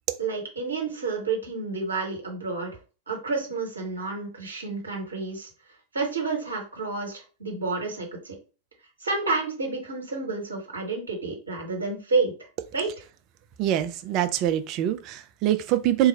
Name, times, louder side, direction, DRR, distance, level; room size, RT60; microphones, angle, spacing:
voice 1, 0.2-2.7 3.1-5.5 5.9-8.3 9.0-12.3 12.7-12.9, right 4 dB, 75° right, 1.1 m, -29 dB
voice 2, 13.6-16.1, right 12 dB, 40° right, 0.4 m, -24 dB
3.0 x 2.3 x 4.2 m
figure-of-eight pair, 90°, 0 cm